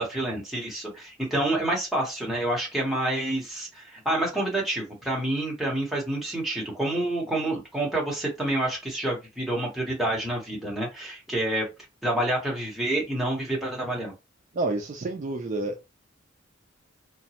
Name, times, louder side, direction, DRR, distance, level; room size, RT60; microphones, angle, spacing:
voice 1, 0.0-11.7 12.0-14.1, right 1 dB, ahead, 1.0 m, -28 dB
voice 2, 14.5-15.8, right 2 dB, 40° right, 0.4 m, -29 dB
2.9 x 2.2 x 2.8 m
head